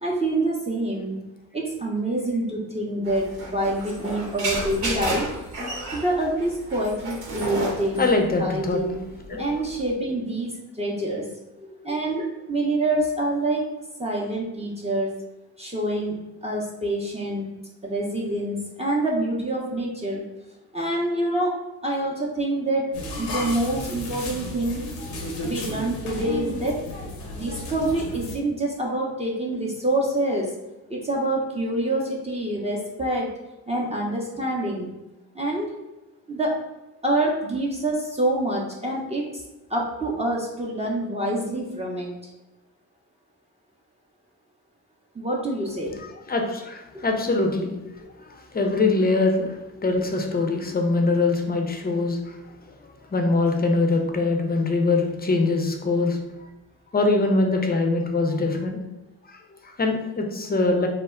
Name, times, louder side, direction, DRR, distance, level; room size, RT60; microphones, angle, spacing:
voice 1, 0.0-1.2 1.5-5.3 5.9-9.0 9.3-11.2 11.6-13.6 14.0-15.1 15.6-16.1 16.4-17.5 17.8-20.2 20.7-21.5 21.8-22.9 23.2-24.9 25.4-26.8 27.3-30.5 30.9-33.3 33.7-34.9 35.3-35.7 36.3-36.6 37.0-39.4 39.7-42.1 45.1-45.9 46.9-47.0, right 1 dB, 15° right, -3 dB, 0.6 m, -26 dB
sound 1, 3.0-9.9, right 1 dB, 65° right, 0.9 m, -32 dB
voice 2, 8.0-8.8 9.3-9.4 46.3-52.4 52.7-56.2 56.9-58.8 59.3-60.9, left 3 dB, 25° left, 3 dB, 0.5 m, -23 dB
sound 2, 22.9-28.4, left 2 dB, 75° left, 0.7 m, -33 dB
2.1 x 2.1 x 3.5 m, 1.0 s
supercardioid pair, 45°, 40 cm